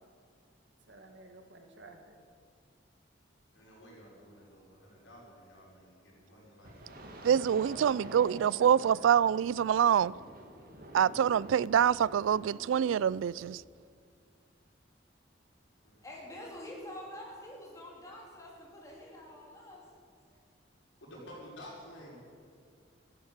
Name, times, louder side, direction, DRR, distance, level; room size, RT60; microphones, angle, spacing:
voice 1, 0.9-2.1 7.7-9.4, right 2 dB, 70° right, 2.0 m, -51 dB
voice 2, 3.5-7.0 15.8-16.2 21.0-22.2, equal, 80° left, 5.5 m, -52 dB
sound 1, 6.6-13.6, right 1 dB, 50° right, 2.0 m, -49 dB
voice 3, 7.2-10.1 10.9-13.6, right 8 dB, 90° right, 0.3 m, -26 dB
voice 4, 16.0-19.8, left 1 dB, 15° left, 3.5 m, -46 dB
14.0 x 13.5 x 7.4 m
head